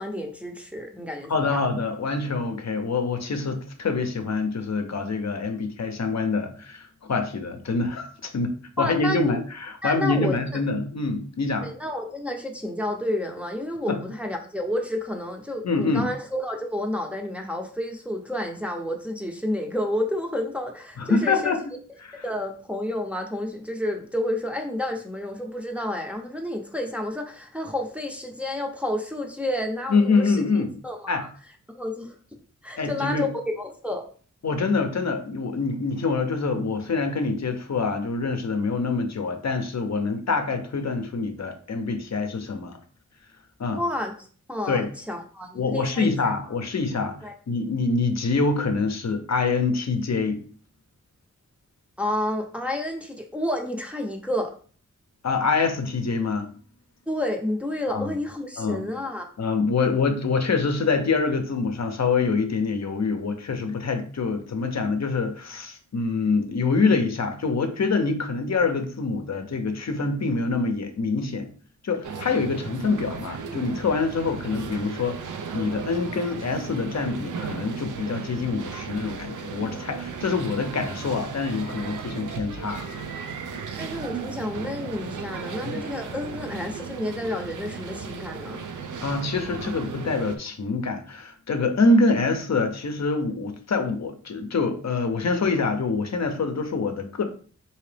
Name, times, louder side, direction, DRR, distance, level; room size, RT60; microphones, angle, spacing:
voice 1, 0.0-1.6 8.8-9.3 9.8-10.6 11.6-21.5 22.1-30.4 30.8-31.3 31.7-32.1 32.6-33.3 33.6-34.1 43.7-46.1 47.2-47.3 52.0-54.5 57.1-59.3 83.8-88.6, left 1 dB, 5° right, 2 dB, 0.6 m, -30 dB
voice 2, 1.3-11.7 13.9-14.0 15.6-16.1 21.0-21.6 22.0-22.2 29.9-30.7 31.1-31.2 32.8-33.3 34.4-42.7 43.6-43.8 44.7-44.9 45.5-47.2 47.5-50.4 55.2-56.5 57.9-58.1 58.6-58.8 59.4-71.5 71.8-82.9 85.6-85.7 89.0-97.2, left 4 dB, 60° left, 6 dB, 0.6 m, -25 dB
sound 1, 72.0-90.4, right 5 dB, 85° right, 0.5 m, -36 dB
3.8 x 2.8 x 3.3 m, 0.43 s
wide cardioid pair, 90°, 30 cm